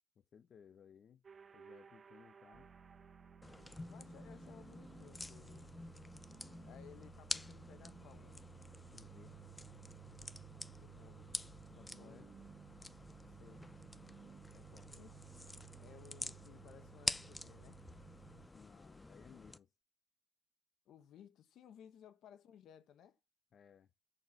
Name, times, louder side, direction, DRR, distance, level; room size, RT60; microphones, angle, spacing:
voice 1, 0.2-1.2 1.5-2.7 8.9-9.3 11.8-12.3 14.5-14.9 18.5-19.7 23.5-23.9, left 7 dB, 55° left, 0.9 m, -61 dB
sound 1, 1.2-5.2, right 6 dB, 40° right, 0.5 m, -61 dB
sound 2, 2.5-18.5, right 9 dB, 60° right, 1.1 m, -58 dB
sound 3, 3.4-19.6, left 2 dB, 15° left, 0.6 m, -48 dB
voice 2, 3.8-5.7 6.6-8.4 10.6-11.3 11.7-12.3 13.3-13.7 14.9-15.2 15.8-17.8 20.8-23.2, left 9 dB, 80° left, 1.3 m, -60 dB
7.0 x 6.4 x 5.8 m
cardioid pair, 90°, 0 cm